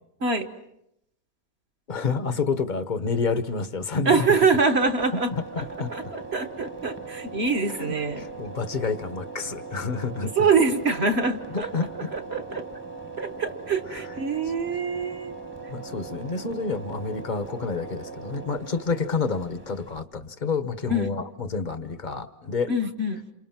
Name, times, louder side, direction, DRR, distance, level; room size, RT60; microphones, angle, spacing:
voice 1, 1.9-4.4 5.1-5.9 7.7-10.5 11.5-12.1 13.9-14.0 15.7-22.7, left 4 dB, 30° left, 11 dB, 1.0 m, -29 dB
sound 1, 4.0-20.0, right 4 dB, 15° right, 1.1 m, -40 dB
voice 2, 4.0-5.3 5.9-8.2 10.4-11.7 12.0-12.6 13.2-15.3 20.9-21.1 22.7-23.2, right 4 dB, 40° right, 6 dB, 1.4 m, -24 dB
28.5 x 28.0 x 5.9 m, 0.81 s
omnidirectional pair, 1.8 m